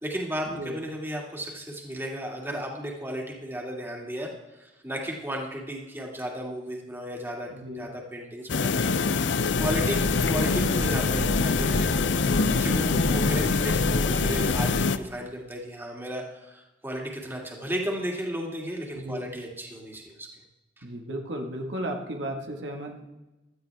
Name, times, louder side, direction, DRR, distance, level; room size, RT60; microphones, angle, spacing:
voice 1, 0.0-8.7 9.4-12.1 12.5-20.3 20.8-20.9, equal, 15° right, -1 dB, 2.4 m, -34 dB
voice 2, 7.5-7.9 12.7-13.1 18.9-19.3 20.8-23.2, right 1 dB, 85° right, 2 dB, 1.8 m, -35 dB
sound 1, 8.5-15.0, left 4 dB, 85° left, 0.6 m, -25 dB
Breathing / Train, 9.4-15.0, equal, 55° left, 3.1 m, -31 dB
16.5 x 12.5 x 3.6 m, 1.1 s
head